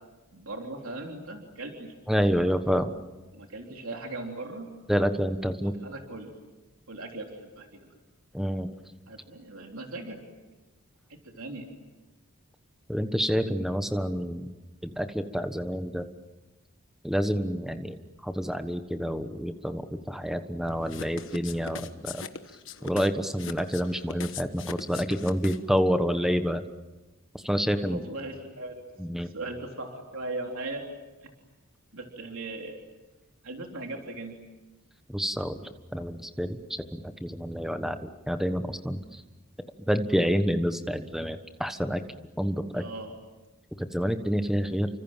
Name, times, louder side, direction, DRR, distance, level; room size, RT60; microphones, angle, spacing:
voice 1, 0.3-1.9 3.3-4.7 5.6-6.3 6.9-7.9 9.1-10.2 11.1-11.7 27.8-28.8 29.2-30.8 31.9-32.8 33.4-34.4 42.8-43.2, right 2 dB, 75° right, 1 dB, 3.5 m, -38 dB
voice 2, 2.1-2.9 4.9-5.7 8.3-8.7 12.9-14.5 14.8-16.0 17.0-18.0 18.2-19.8 20.1-22.2 22.8-26.6 27.3-28.0 29.0-29.3 35.1-35.6 35.9-36.6 36.9-39.2 39.9-42.0 42.4-42.8 43.8-44.9, equal, ahead, 8 dB, 1.3 m, -28 dB
sound 1, 20.9-25.8, left 5 dB, 60° left, 1.3 m, -40 dB
30.0 x 25.5 x 7.4 m, 1.2 s
head